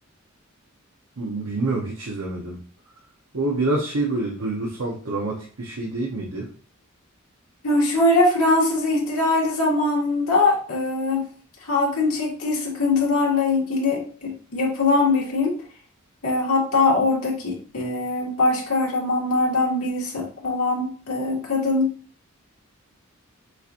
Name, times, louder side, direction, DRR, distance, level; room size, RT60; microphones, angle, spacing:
voice 1, 1.2-2.6 3.3-6.5, right 2 dB, 85° right, -2 dB, 0.9 m, -27 dB
voice 2, 7.6-11.3 11.7-15.5 16.2-21.9, left 2 dB, 85° left, -3 dB, 1.9 m, -22 dB
6.5 x 2.8 x 2.5 m, 0.42 s
head